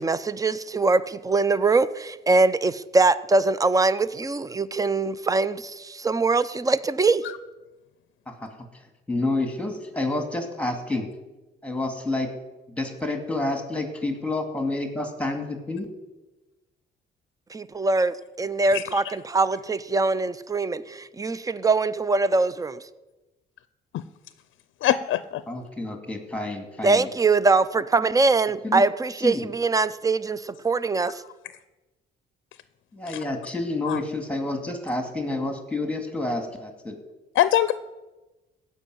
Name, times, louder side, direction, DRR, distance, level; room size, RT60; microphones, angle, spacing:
voice 1, 0.0-7.2 17.5-22.8 26.8-31.2, right 3 dB, 15° right, 16 dB, 0.6 m, -23 dB
voice 2, 9.1-11.1 11.6-12.3 12.7-15.9 25.5-27.1 28.6-28.8 29.2-29.5 32.9-36.9, left 2 dB, 5° left, 4 dB, 2.2 m, -29 dB
voice 3, 24.8-25.4 33.1-33.2 33.8-34.0 37.3-37.7, left 12 dB, 75° left, 14 dB, 0.5 m, -23 dB
15.5 x 5.5 x 9.2 m, 1.1 s
cardioid pair, 90°, 20 cm